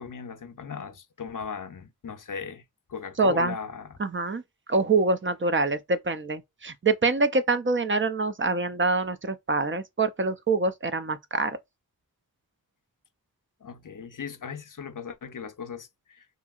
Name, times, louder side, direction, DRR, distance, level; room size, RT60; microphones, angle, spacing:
voice 1, 0.0-2.6 2.9-4.0 13.6-16.3, left 6 dB, 55° left, 0.6 m, -38 dB
voice 2, 3.2-3.6 4.0-4.4 4.7-11.6, right 3 dB, 30° right, 0.5 m, -25 dB
2.7 x 2.7 x 2.4 m
wide cardioid pair, 45°, 39 cm